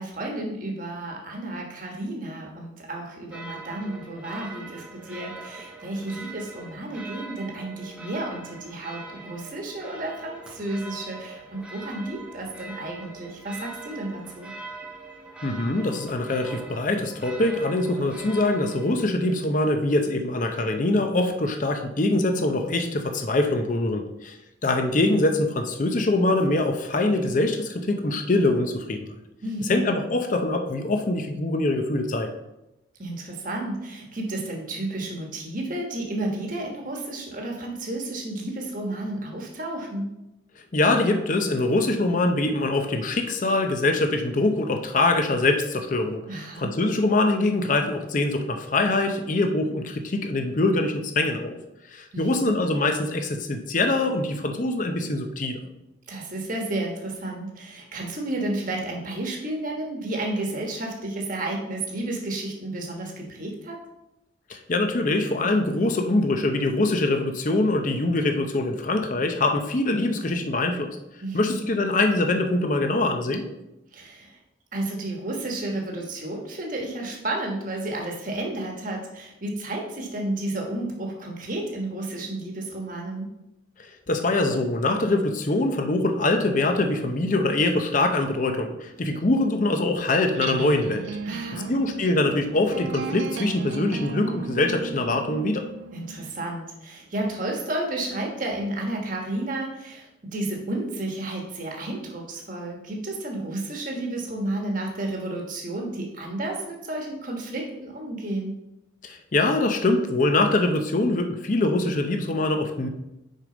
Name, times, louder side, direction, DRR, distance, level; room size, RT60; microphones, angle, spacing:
voice 1, 0.0-14.5 29.4-29.8 33.0-40.1 46.3-46.7 52.1-52.6 56.1-63.8 71.2-71.6 73.9-74.4 74.7-83.3 91.2-91.7 95.9-108.5, right 1 dB, 45° right, 0 dB, 1.2 m, -32 dB
sound 1, 3.3-19.1, right 3 dB, 5° right, 0.8 m, -42 dB
voice 2, 15.4-24.4 24.6-29.0 29.7-32.3 40.7-51.6 51.9-55.6 64.5-71.0 71.3-73.5 83.8-91.1 91.7-95.7 109.0-112.9, left 2 dB, 40° left, 5 dB, 0.6 m, -23 dB
sound 2, 90.3-96.3, right 5 dB, 65° right, 0.3 m, -35 dB
6.5 x 5.0 x 3.8 m, 0.91 s
head